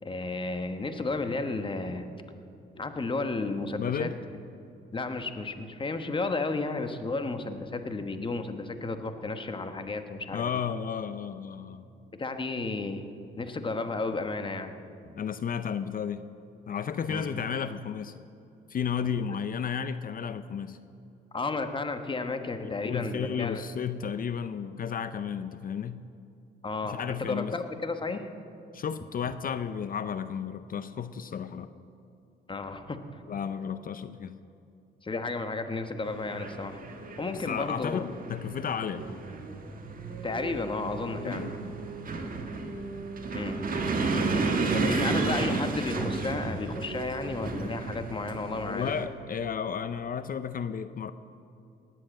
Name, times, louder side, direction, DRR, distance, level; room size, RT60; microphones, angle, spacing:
voice 1, 0.0-2.1 2.7-4.1 4.9-10.4 12.1-13.1 13.4-14.7 17.1-17.3 21.3-23.6 26.6-28.3 32.5-33.0 35.0-36.8 37.2-38.0 40.2-41.5 43.3-43.6 44.7-48.9, left 3 dB, 25° left, 8 dB, 1.2 m, -33 dB
voice 2, 3.8-4.1 10.3-11.8 15.2-16.2 16.7-18.1 18.7-20.8 22.6-26.0 26.8-27.5 28.7-31.7 33.3-34.3 37.3-39.0 41.2-41.7 44.8-45.1 48.6-51.1, left 7 dB, 45° left, 12 dB, 0.6 m, -33 dB
sound 1, 36.1-49.1, right 3 dB, 45° right, 1.7 m, -32 dB
19.0 x 7.7 x 7.7 m, 2.6 s
cardioid pair, 90°, 20 cm